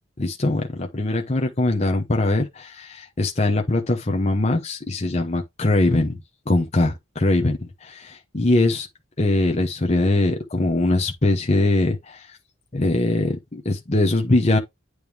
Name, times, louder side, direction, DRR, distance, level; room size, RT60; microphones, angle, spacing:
voice 1, 0.2-6.2 6.5-8.9 9.2-12.3 12.7-14.6, left 2 dB, 30° left, 0.9 m, -22 dB
9.0 x 3.2 x 3.3 m
head